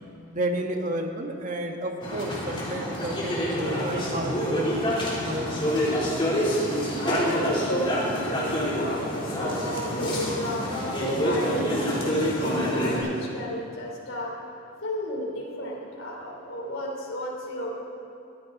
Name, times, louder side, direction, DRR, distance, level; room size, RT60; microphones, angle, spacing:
voice 1, 0.3-5.8, right 1 dB, 40° right, 3 dB, 1.4 m, -31 dB
sound 1, 2.0-13.0, equal, 25° left, 3.3 m, -27 dB
voice 2, 6.9-10.7 11.2-14.3 14.8-17.8, equal, 70° left, -2 dB, 3.6 m, -33 dB
20.5 x 14.5 x 4.0 m, 2.7 s
head